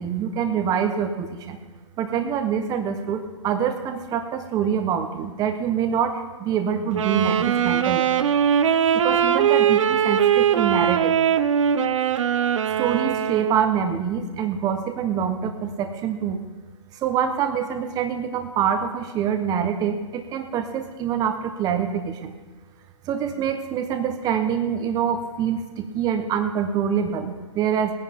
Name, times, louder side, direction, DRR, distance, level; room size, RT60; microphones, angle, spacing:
voice 1, 0.0-1.6 2.0-8.1 8.9-11.1 12.8-16.4 17.0-22.3 23.1-27.9, right 8 dB, 25° right, 7 dB, 1.2 m, -25 dB
Wind instrument woodwind instrument, 6.9-13.8, right 9 dB, 70° right, 0.8 m, -21 dB
19.5 x 10.0 x 3.7 m, 1.3 s
hypercardioid pair, 140°, 17 cm